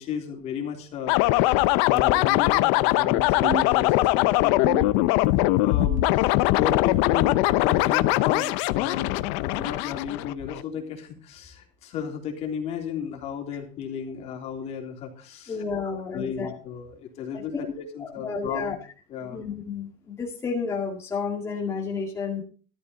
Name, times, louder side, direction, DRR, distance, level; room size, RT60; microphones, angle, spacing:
voice 1, 0.0-4.9 5.3-18.8 19.1-19.4, left 8 dB, 45° left, 2 dB, 3.4 m, -34 dB
sound 1, 1.1-10.6, left 18 dB, 75° left, 0.7 m, -21 dB
sound 2, 3.4-4.3 4.6-5.4 5.9-6.5 7.1-7.7 8.3-8.7 9.5-9.8 10.7-11.0 12.0-12.2 13.2-13.4 14.4-14.6 15.6-15.8 16.8-16.9 18.1-18.2, right 8 dB, 40° right, 1.1 m, -38 dB
voice 2, 15.5-16.6 17.3-17.6 18.0-18.7 19.2-22.4, left 5 dB, 20° left, -2 dB, 2.1 m, -31 dB
13.0 x 13.0 x 4.0 m, 0.38 s
cardioid pair, 155°, 15 cm